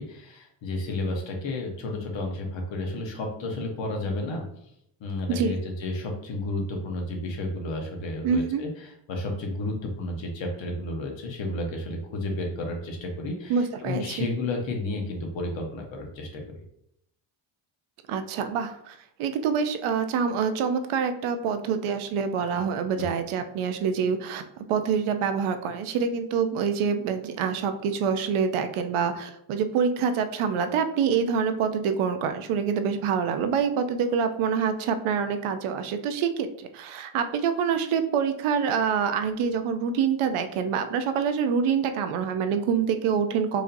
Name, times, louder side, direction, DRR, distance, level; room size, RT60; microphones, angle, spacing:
voice 1, 0.0-4.5 5.0-16.5 23.0-23.1, left 2 dB, 65° left, 1 dB, 1.1 m, -32 dB
voice 2, 8.2-8.6 13.5-14.3 18.1-24.4 24.7-43.6, right 6 dB, 85° right, 8 dB, 0.6 m, -26 dB
4.9 x 2.7 x 2.6 m, 0.75 s
cardioid pair, 110°, 48 cm